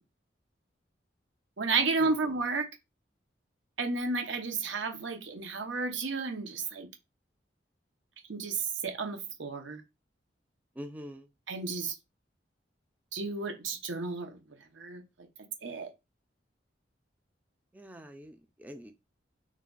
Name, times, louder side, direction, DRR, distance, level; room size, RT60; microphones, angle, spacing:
voice 1, 1.6-2.7 3.8-6.9 8.3-9.8 11.5-11.9 13.1-14.4 14.8-15.0 15.6-15.9, right 4 dB, 90° right, 0.9 m, -32 dB
voice 2, 10.8-11.3 17.7-18.9, equal, 10° right, 0.3 m, -45 dB
3.1 x 2.3 x 3.8 m
head